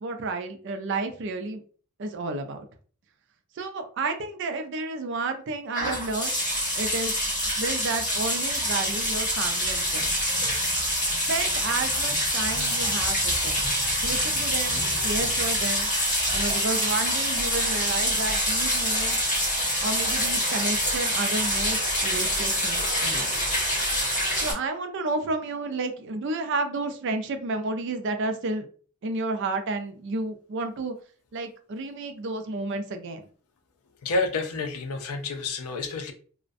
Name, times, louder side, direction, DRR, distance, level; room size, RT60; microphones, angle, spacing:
voice 1, 0.0-1.6 2.0-2.7 3.6-6.4 6.7-7.1 7.6-10.2 11.3-13.6 14.0-15.9 16.3-19.2 19.8-23.3 24.4-28.7 29.0-30.9 31.3-33.2, right 3 dB, 55° right, 7 dB, 0.4 m, -31 dB
sound 1, 5.7-24.5, equal, 35° left, 1.1 m, -26 dB
voice 2, 34.0-36.1, left 3 dB, 75° left, 7 dB, 0.5 m, -29 dB
2.4 x 2.1 x 2.4 m, 0.42 s
head